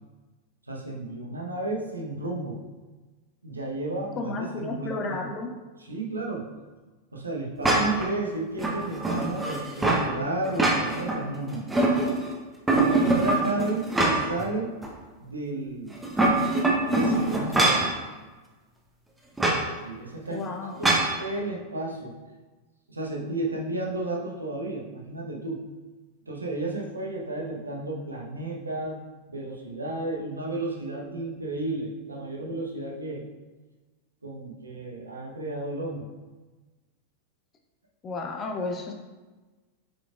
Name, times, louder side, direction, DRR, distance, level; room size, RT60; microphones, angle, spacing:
voice 1, 0.7-2.6 3.4-5.3 5.8-6.5 7.1-11.6 12.7-14.7 15.2-15.9 16.9-17.9 19.8-20.5 20.8-22.1 22.9-25.6 26.3-29.0 29.3-33.2 34.2-36.1, right 2 dB, 80° right, -2 dB, 1.1 m, -32 dB
voice 2, 4.2-5.5 20.3-20.9 38.0-38.9, left 3 dB, 25° left, 3 dB, 0.8 m, -32 dB
sound 1, 7.6-8.1 8.6-10.1 10.4-11.2 11.5-12.3 12.7-14.4 14.8-14.9 15.9-17.9 19.4-19.6 20.8-21.1, right 2 dB, 10° right, 1.0 m, -23 dB
7.4 x 5.0 x 2.5 m, 1.2 s
figure-of-eight pair, 90°, 0 cm